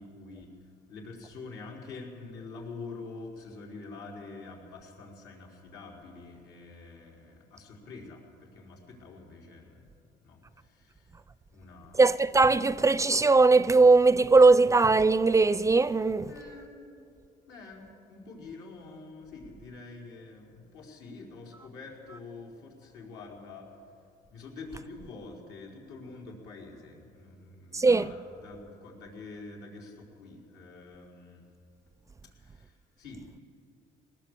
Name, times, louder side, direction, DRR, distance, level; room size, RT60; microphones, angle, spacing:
voice 1, 0.0-9.9 10.2-11.2 11.5-12.0 16.3-17.1 17.5-23.8 24.3-31.5 32.2-33.4, left 3 dB, 85° left, 5.2 m, -46 dB
voice 2, 12.0-16.3 27.7-28.1, right 3 dB, 20° right, 0.5 m, -20 dB
21.0 x 19.0 x 8.4 m
cardioid pair, 110°, 17 cm